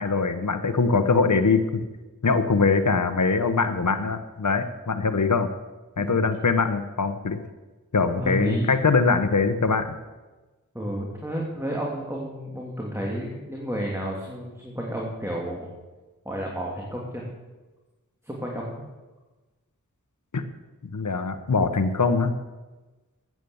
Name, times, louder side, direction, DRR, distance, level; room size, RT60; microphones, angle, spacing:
voice 1, 0.0-1.8 2.2-5.5 6.0-7.4 7.9-9.9 20.3-20.4 20.9-22.4, left 4 dB, 60° left, 9 dB, 1.2 m, -22 dB
voice 2, 6.0-6.3 8.1-8.7 10.7-15.7 16.2-17.3 18.2-18.8, equal, 10° right, -3 dB, 3.0 m, -31 dB
14.0 x 9.4 x 7.1 m, 1.2 s
wide cardioid pair, 40°, 33 cm